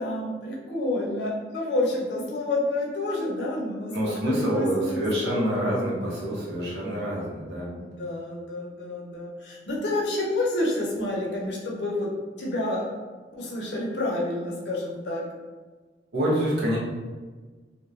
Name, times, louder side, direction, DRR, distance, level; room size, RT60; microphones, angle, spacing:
voice 1, 0.0-5.4 7.8-12.1 12.4-12.8 13.3-15.2, left 2 dB, 70° left, -3 dB, 0.6 m, -29 dB
voice 2, 3.9-7.7 16.1-16.8, equal, 70° right, -5 dB, 0.9 m, -26 dB
2.9 x 2.1 x 2.4 m, 1.4 s
head